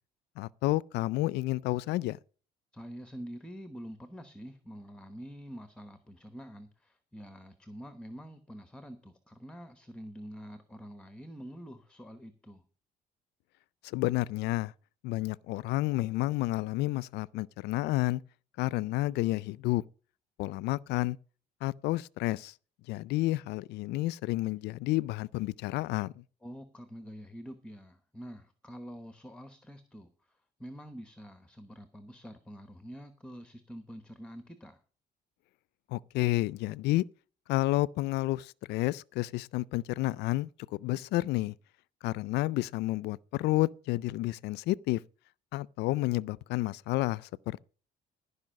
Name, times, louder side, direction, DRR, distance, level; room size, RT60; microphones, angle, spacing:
voice 1, 0.4-2.2 13.8-14.7 15.0-18.2 18.6-19.8 20.4-21.2 21.6-22.5 22.9-26.2 35.9-37.0 37.5-41.5 42.0-45.0 45.5-47.6, left 18 dB, 80° left, 0.4 m, -30 dB
voice 2, 2.7-12.6 26.4-34.8, equal, 5° left, 1.0 m, -46 dB
15.0 x 5.4 x 6.4 m
cardioid pair, 110°, 17 cm